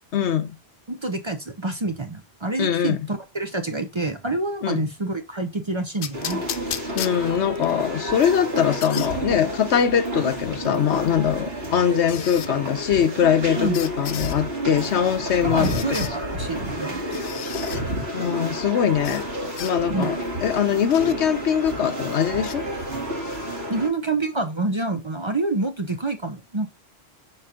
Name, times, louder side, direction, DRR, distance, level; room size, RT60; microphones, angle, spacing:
voice 1, 0.1-0.5 2.6-3.0 4.6-4.8 7.0-15.8 18.1-20.2 20.4-22.6, left 8 dB, 85° left, 1.1 m, -22 dB
voice 2, 0.9-6.4 13.6-13.8 15.4-17.2 19.9-20.1 23.7-26.7, right 2 dB, 30° right, 0.7 m, -27 dB
sound 1, 6.0-7.7 8.2-9.1 10.6-10.7 12.1-12.5 13.7-14.4 15.6-16.1 17.1-17.8 19.0-19.3 19.6-19.7 20.9-21.2 22.4-22.6, left 9 dB, 65° left, 0.7 m, -34 dB
sound 2, 6.1-23.9, equal, 65° right, 2.2 m, -30 dB
5.7 x 4.3 x 5.0 m
omnidirectional pair, 1.1 m